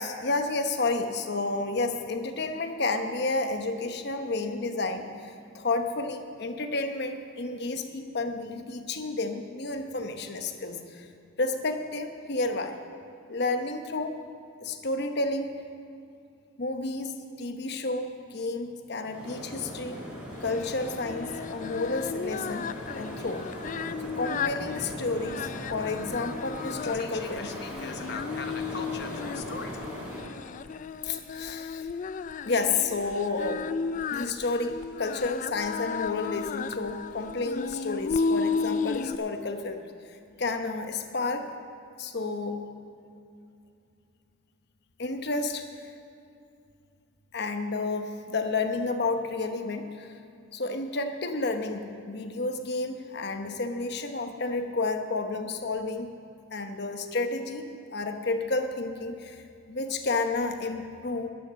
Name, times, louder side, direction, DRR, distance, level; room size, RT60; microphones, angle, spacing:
voice 1, 0.0-11.1 11.4-12.7 13.3-14.1 14.6-15.5 16.6-17.1 17.4-20.0 20.4-22.7 22.9-23.5 24.2-29.7 31.0-31.9 32.4-33.7 34.1-39.8 40.1-41.5 42.0-42.6 45.0-45.6 47.3-50.1 50.5-56.1 56.5-57.6 57.9-59.4 59.7-61.3, left 3 dB, 55° left, 6 dB, 1.0 m, -31 dB
sound 1, 19.0-30.2, equal, 5° right, 3.6 m, -39 dB
Singing, 20.4-39.2, left 5 dB, 40° left, 0.3 m, -34 dB
11.5 x 11.0 x 6.4 m, 2.5 s
head